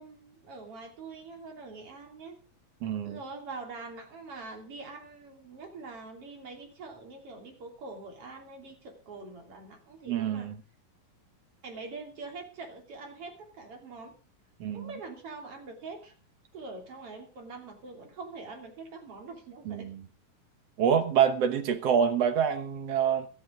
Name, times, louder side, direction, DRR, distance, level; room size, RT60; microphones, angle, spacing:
voice 1, 0.0-2.4 3.0-10.5 11.6-14.1 14.7-16.1 16.5-19.9, right 3 dB, 40° right, 3.7 m, -44 dB
voice 2, 2.8-3.2 10.1-10.6 14.6-14.9 19.6-20.0 20.8-23.3, right 8 dB, 65° right, 1.6 m, -26 dB
16.0 x 13.5 x 3.8 m
omnidirectional pair, 4.2 m